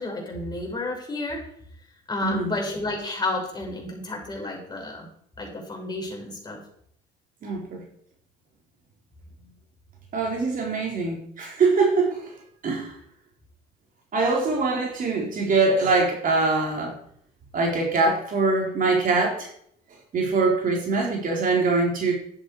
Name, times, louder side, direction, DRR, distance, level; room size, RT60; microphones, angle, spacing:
voice 1, 0.0-1.4 2.1-5.1 5.4-6.6, left 2 dB, 25° left, -1 dB, 5.8 m, -31 dB
voice 2, 2.2-2.5 7.4-7.8 10.1-12.2 12.6-12.9 14.1-16.9 17.5-19.5 20.1-22.1, right 3 dB, 50° right, 0 dB, 4.3 m, -23 dB
11.5 x 10.5 x 5.0 m, 0.67 s
supercardioid pair, 80°, 18 cm